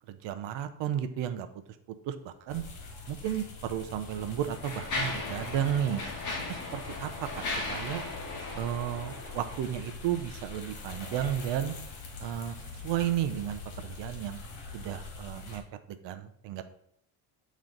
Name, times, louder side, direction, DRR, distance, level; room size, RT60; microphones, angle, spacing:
voice 1, 0.1-1.5 1.9-2.6 3.1-6.0 6.5-8.1 8.5-11.7 12.2-14.4 14.7-15.6 15.9-16.6, right 10 dB, 60° right, 9 dB, 0.7 m, -33 dB
sound 1, 2.5-15.6, left 3 dB, 60° left, 1.9 m, -44 dB
Mechanisms, 3.2-3.4 4.1-9.9, left 2 dB, 40° left, 1.6 m, -37 dB
8.6 x 3.1 x 3.9 m, 0.71 s
cardioid pair, 145°, 48 cm